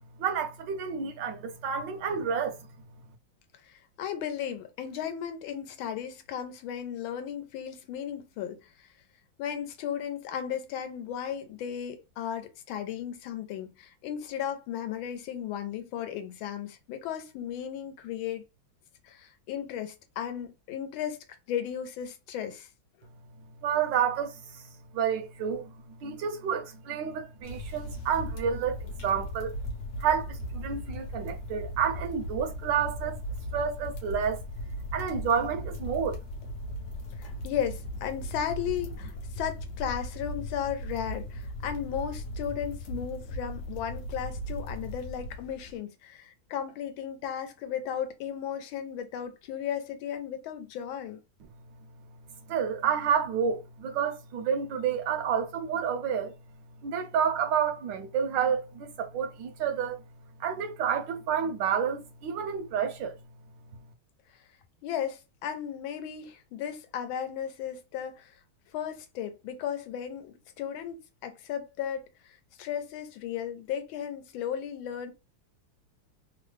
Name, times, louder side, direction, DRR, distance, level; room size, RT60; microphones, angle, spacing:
voice 1, 0.2-2.7 23.6-24.7 24.9-25.7 26.0-29.6 30.0-33.2 33.5-34.4 34.9-36.2 52.5-56.3 56.8-60.0 60.4-63.2, right 7 dB, 75° right, 1.1 m, -29 dB
voice 2, 3.6-8.9 9.4-18.4 19.0-22.7 37.2-51.2 64.8-68.3 68.7-75.1, left 9 dB, 85° left, 1.4 m, -35 dB
sound 1, 27.4-45.8, equal, 65° left, 1.1 m, -38 dB
3.5 x 2.0 x 3.2 m
omnidirectional pair, 2.2 m